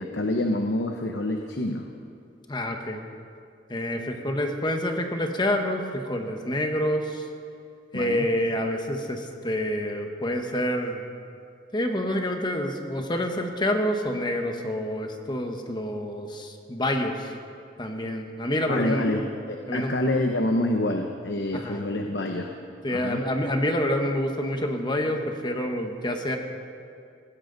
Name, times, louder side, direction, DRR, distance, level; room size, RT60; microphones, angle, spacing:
voice 1, 0.0-1.8 7.9-8.3 18.7-22.5 22.9-23.2, left 1 dB, 70° left, 4 dB, 0.9 m, -27 dB
voice 2, 2.5-3.0 3.7-7.3 7.9-11.0 11.7-17.3 17.8-19.2 19.7-20.0 21.5-21.8 22.8-26.4, left 1 dB, 25° left, 4 dB, 1.2 m, -27 dB
19.5 x 16.0 x 4.0 m, 2.4 s
head